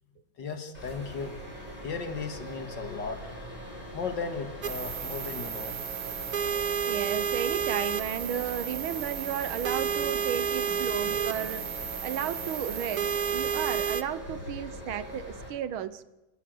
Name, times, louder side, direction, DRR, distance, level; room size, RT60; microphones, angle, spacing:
voice 1, 0.4-1.4 1.8-3.3 3.9-5.8 9.3-11.5 14.3-14.4 15.1-15.2, left 5 dB, 60° left, 7 dB, 2.4 m, -38 dB
sound 1, 0.7-15.5, equal, 20° left, 8.2 m, -42 dB
sound 2, 4.6-14.0, right 7 dB, 55° right, 1.3 m, -31 dB
voice 2, 6.9-11.7 12.0-16.0, right 9 dB, 80° right, 15 dB, 1.8 m, -34 dB
28.0 x 13.5 x 7.8 m, 1.0 s
omnidirectional pair, 2.2 m